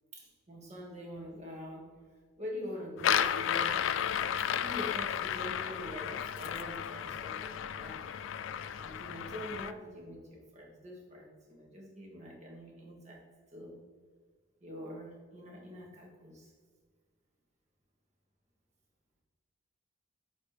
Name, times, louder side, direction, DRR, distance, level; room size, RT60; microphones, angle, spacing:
voice 1, 0.1-2.0 2.4-3.8 4.4-8.0 8.7-13.2 13.5-13.8 14.6-16.5, equal, 35° right, -1 dB, 1.4 m, -45 dB
sound 1, 3.0-9.7, left 9 dB, 65° left, 0.3 m, -33 dB
8.4 x 3.0 x 4.8 m, 1.5 s
head